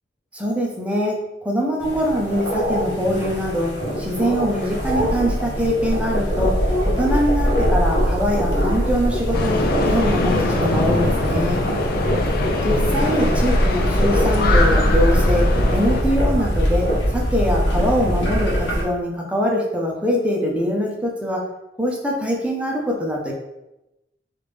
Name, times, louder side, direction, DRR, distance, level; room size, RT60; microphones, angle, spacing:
voice 1, 0.3-1.2 1.4-6.6 6.9-11.6 12.6-16.9 17.1-21.4 21.8-23.3, equal, 5° right, -2 dB, 0.6 m, -23 dB
sound 1, 1.8-18.8, equal, 80° left, 0.9 m, -21 dB
sound 2, 9.3-16.0, left 2 dB, 55° left, 0.5 m, -23 dB
3.5 x 2.5 x 3.2 m, 0.94 s
head